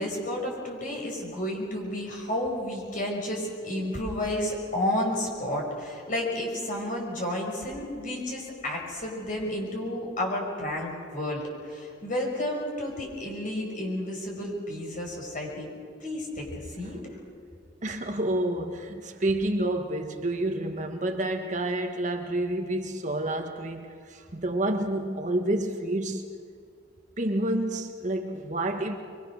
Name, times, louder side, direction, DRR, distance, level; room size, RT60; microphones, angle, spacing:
voice 1, 0.0-15.7 16.0-17.0, left 1 dB, 45° left, 5.9 m, -31 dB
voice 2, 17.8-26.2 27.2-29.0, right 1 dB, 40° right, 1.5 m, -29 dB
24.5 x 23.0 x 6.5 m
head